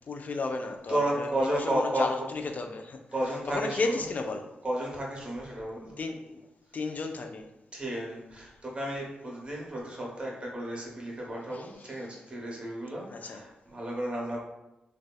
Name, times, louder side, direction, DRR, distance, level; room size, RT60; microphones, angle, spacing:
voice 1, 0.1-3.0 3.5-4.4 6.0-6.2 6.7-7.4 11.5-11.6 13.1-13.4, left 3 dB, 50° left, 0.3 m, -33 dB
voice 2, 0.9-2.3 3.1-4.1 4.6-6.0 7.7-14.4, right 1 dB, 30° right, 0.9 m, -32 dB
2.6 x 2.3 x 2.3 m
supercardioid pair, 40°, 3 cm